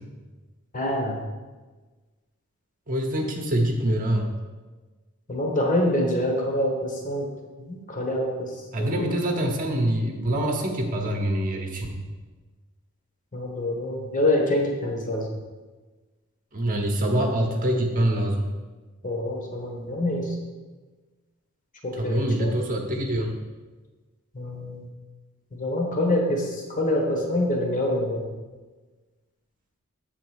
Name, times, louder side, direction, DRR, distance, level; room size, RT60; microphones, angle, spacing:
voice 1, 0.7-1.2 5.3-7.3 7.7-9.2 13.3-15.3 19.0-20.3 21.8-22.6 24.3-24.9 25.5-28.3, left 1 dB, 40° left, 0 dB, 1.3 m, -26 dB
voice 2, 2.9-4.3 8.7-12.0 16.5-18.5 21.9-23.4, right 1 dB, 40° right, 1 dB, 0.9 m, -25 dB
7.9 x 3.9 x 6.4 m, 1.3 s
head